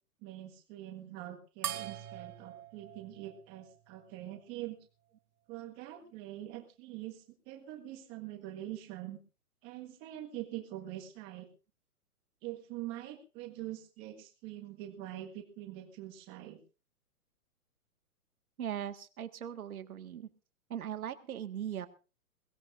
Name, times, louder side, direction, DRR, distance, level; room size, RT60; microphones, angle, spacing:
voice 1, 0.2-4.8 5.5-9.2 9.6-11.5 12.4-16.6, right 14 dB, 20° right, 4 dB, 1.7 m, -44 dB
sound 1, 1.6-4.4, right 10 dB, 90° right, 1.0 m, -43 dB
voice 2, 18.6-20.3 20.7-21.9, right 10 dB, 75° right, 9 dB, 1.8 m, -39 dB
22.5 x 16.5 x 2.6 m, 0.33 s
hypercardioid pair, 165°, 44 cm